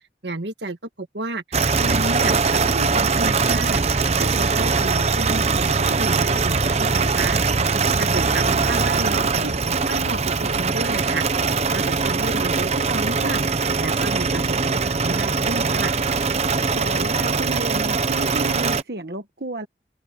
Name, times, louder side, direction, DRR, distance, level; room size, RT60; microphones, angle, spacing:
voice 1, 0.2-1.4 1.8-3.8 4.2-7.4 8.0-9.5 9.9-11.2 11.7-13.4 13.8-15.9, right 2 dB, 75° right, 1.9 m, -31 dB
sound 1, 1.5-18.8, right 4 dB, 35° right, 0.8 m, -21 dB
voice 2, 7.7-8.4 16.4-19.7, right 2 dB, 60° right, 1.4 m, -33 dB
open air
head